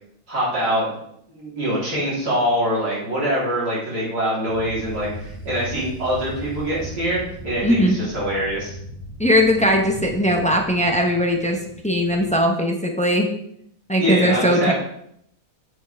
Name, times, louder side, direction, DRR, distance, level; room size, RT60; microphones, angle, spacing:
voice 1, 0.3-0.9 1.3-8.7 14.0-14.7, equal, 75° right, -7 dB, 4.2 m, -24 dB
sound 1, 4.5-12.4, right 1 dB, 20° right, 3.0 m, -38 dB
voice 2, 7.6-8.0 9.2-13.3 13.9-14.7, equal, 5° left, 1 dB, 0.6 m, -19 dB
8.3 x 7.0 x 3.5 m, 0.72 s
omnidirectional pair, 1.7 m